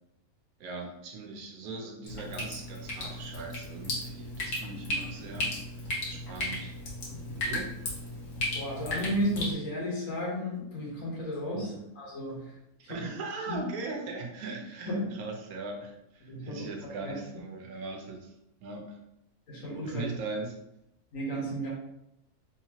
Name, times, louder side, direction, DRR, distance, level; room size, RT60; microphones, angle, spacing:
voice 1, 0.6-6.8 7.4-7.7 11.5-11.8 12.8-18.3 18.6-19.0 19.8-20.6, right 3 dB, 75° right, 2 dB, 1.1 m, -40 dB
Drip, 2.1-9.5, left 1 dB, 85° left, 1.5 m, -35 dB
voice 2, 8.5-11.7 12.0-12.5 12.8-12.9 13.5-13.6 14.9-15.1 16.2-17.1 19.5-20.1 21.1-21.7, equal, 60° left, -4 dB, 1.5 m, -33 dB
3.4 x 2.9 x 2.8 m, 0.82 s
omnidirectional pair, 1.6 m